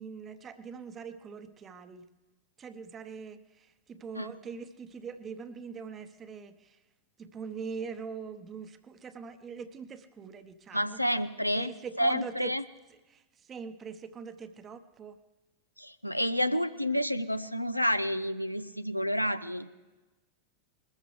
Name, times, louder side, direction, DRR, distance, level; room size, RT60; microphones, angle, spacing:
voice 1, 0.0-2.1 2.6-6.8 7.2-11.0 11.5-12.6 12.9-15.2, right 6 dB, 25° right, 11 dB, 0.9 m, -43 dB
voice 2, 10.7-11.7 12.0-12.6 15.8-19.7, equal, 90° left, 12 dB, 0.5 m, -29 dB
21.0 x 14.0 x 3.3 m, 1.1 s
figure-of-eight pair, 90°, 0 cm